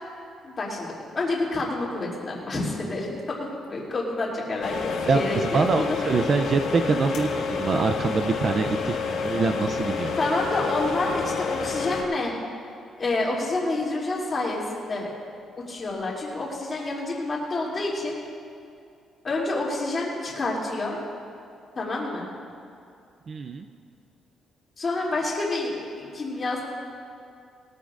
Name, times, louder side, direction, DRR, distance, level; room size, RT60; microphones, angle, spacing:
voice 1, 0.4-3.4 3.7-6.0 10.2-12.3 13.0-15.1 15.7-18.2 19.2-21.0 21.7-22.2 24.8-25.7 26.0-26.6, left 2 dB, 25° left, -4 dB, 2.8 m, -28 dB
sound 1, 4.6-12.0, left 5 dB, 70° left, 2.0 m, -29 dB
voice 2, 5.1-9.0 9.2-10.1 23.3-23.7, right 4 dB, 35° right, 7 dB, 0.5 m, -24 dB
21.0 x 14.0 x 2.5 m, 2.5 s
cardioid pair, 180°, 0 cm